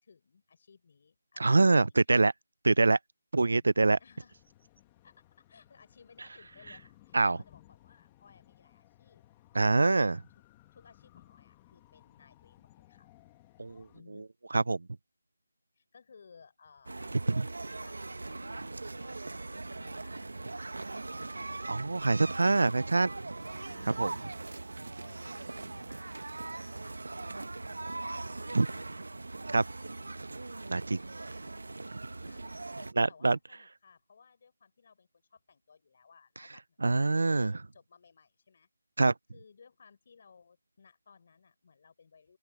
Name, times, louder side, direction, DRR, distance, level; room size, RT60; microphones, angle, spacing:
voice 1, 0.0-2.2 3.5-3.7 4.0-4.4 5.0-9.2 10.0-10.2 10.7-13.1 13.9-14.3 15.8-21.2 23.6-24.4 25.0-28.2 30.9-31.1 32.2-38.7 39.3-42.4, left 5 dB, 35° left, 5.6 m, -60 dB
voice 2, 1.4-2.3 2.6-3.0 3.3-4.0 7.1-7.4 9.6-10.2 13.6-13.8 14.5-14.8 17.4-17.5 21.7-23.2 24.0-24.1 28.5-28.7 29.5-29.6 30.7-31.0 33.0-33.4 36.8-37.5 39.0-39.1, right 3 dB, 70° right, 0.3 m, -24 dB
sound 1, 3.7-14.0, left 16 dB, 15° left, 1.2 m, -61 dB
sound 2, 16.9-32.9, right 2 dB, 90° right, 1.2 m, -40 dB
open air
figure-of-eight pair, 175°, 0 cm